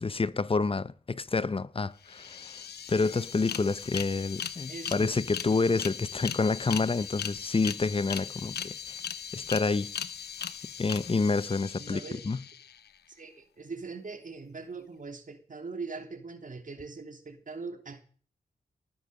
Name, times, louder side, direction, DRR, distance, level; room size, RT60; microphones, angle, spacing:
voice 1, 0.0-2.6 2.9-9.0 9.3-9.9 10.8-12.4, left 4 dB, 35° left, 0.8 m, -28 dB
sound 1, 1.8-1.9 2.1-12.9, left 8 dB, 85° left, 0.9 m, -39 dB
voice 2, 4.7-5.2 11.8-12.2 13.1-18.0, right 4 dB, 55° right, 3.0 m, -41 dB
19.0 x 9.6 x 6.5 m
cardioid pair, 55°, 16 cm